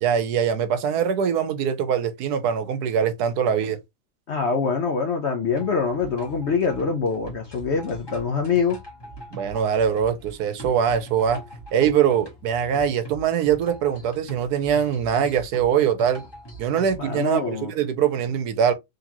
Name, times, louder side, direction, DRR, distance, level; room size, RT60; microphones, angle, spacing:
voice 1, 0.0-3.8 9.3-11.4 11.7-16.2 16.6-18.7, right 8 dB, 75° right, 1.2 m, -22 dB
voice 2, 4.3-8.8 17.0-17.7, left 5 dB, 60° left, 0.7 m, -24 dB
sound 1, 5.4-17.0, right 2 dB, 15° left, 1.3 m, -42 dB
3.9 x 3.2 x 2.9 m
omnidirectional pair, 1.8 m